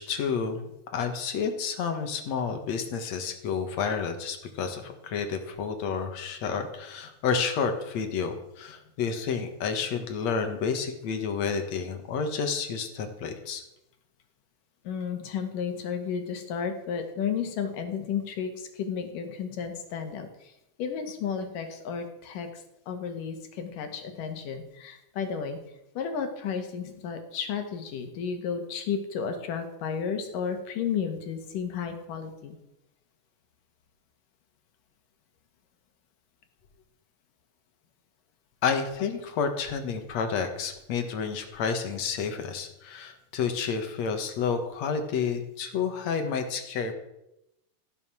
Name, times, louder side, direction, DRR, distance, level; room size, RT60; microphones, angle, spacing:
voice 1, 0.0-13.6 38.6-46.9, left 6 dB, 60° left, 6 dB, 2.6 m, -30 dB
voice 2, 14.8-20.5 20.8-25.6 25.9-32.6, left 6 dB, 85° left, 6 dB, 3.3 m, -33 dB
15.0 x 11.0 x 6.2 m, 0.87 s
omnidirectional pair, 3.7 m